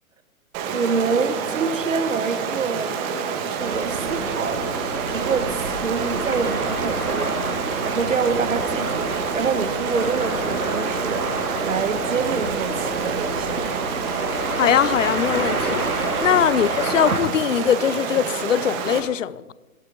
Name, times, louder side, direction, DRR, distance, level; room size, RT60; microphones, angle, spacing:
Stream, 0.5-19.0, right 6 dB, 25° right, 1.8 m, -28 dB
voice 1, 0.7-2.9 3.4-4.7 5.1-7.3 7.8-11.3 11.6-13.9 16.2-16.4, right 5 dB, 60° right, 1.6 m, -26 dB
sound 1, 3.6-17.2, right 2 dB, 90° right, 2.1 m, -28 dB
voice 2, 14.6-19.5, left 9 dB, 60° left, 0.7 m, -21 dB
21.5 x 16.5 x 4.1 m
figure-of-eight pair, 125°, 43 cm